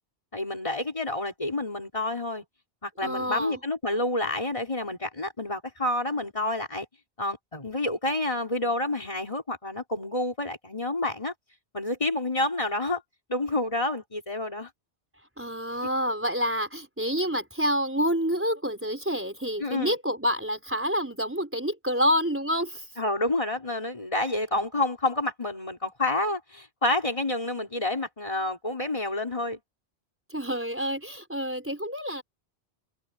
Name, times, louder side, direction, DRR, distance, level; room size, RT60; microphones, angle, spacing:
voice 1, 0.3-2.4 2.8-6.9 7.2-11.3 11.7-13.0 13.3-14.7 19.6-20.0 23.0-29.6, left 2 dB, 30° left, 4.3 m, -29 dB
voice 2, 3.0-3.6 15.4-22.9 30.3-32.2, equal, 10° right, 4.3 m, -28 dB
omnidirectional pair, 1.1 m